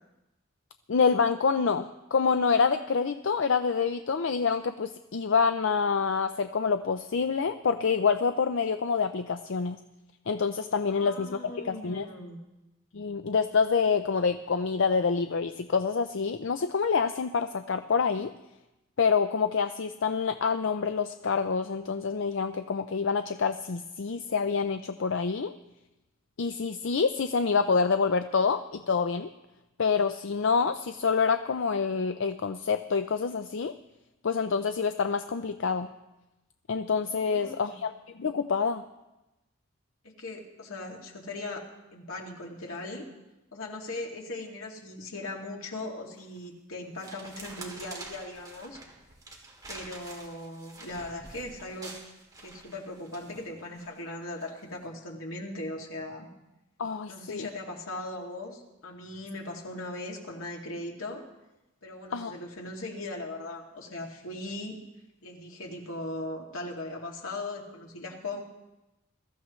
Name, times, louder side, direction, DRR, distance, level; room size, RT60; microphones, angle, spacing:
voice 1, 0.9-9.8 10.3-12.1 12.9-18.3 19.0-25.5 26.4-29.3 29.8-33.7 34.2-35.9 36.7-38.8 56.8-57.5 62.1-62.3, left 5 dB, 65° left, 9 dB, 0.5 m, -27 dB
voice 2, 10.9-12.4 37.0-37.8 40.0-41.6 41.9-43.0 43.5-48.8 49.7-51.9 52.4-56.3 57.1-61.2 61.8-64.8 65.2-68.4, left 2 dB, 85° left, 0 dB, 2.5 m, -39 dB
sound 1, 46.2-46.5 47.0-53.9 54.4-54.6, right 2 dB, 20° right, 2.3 m, -47 dB
21.5 x 14.0 x 3.2 m, 0.99 s
head